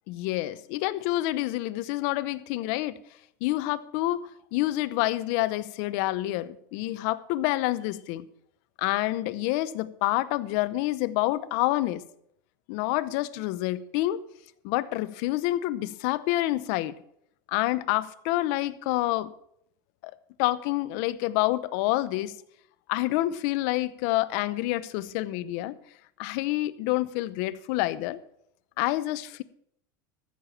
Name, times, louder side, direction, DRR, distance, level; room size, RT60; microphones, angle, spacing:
voice 1, 0.1-3.0 3.4-8.2 8.8-12.0 12.7-14.2 14.6-17.0 17.5-19.3 20.0-20.1 20.4-22.4 22.9-25.8 26.2-28.2 28.8-29.4, left 17 dB, 65° left, 0.8 m, -28 dB
14.0 x 6.7 x 7.4 m
supercardioid pair, 135°, 10 cm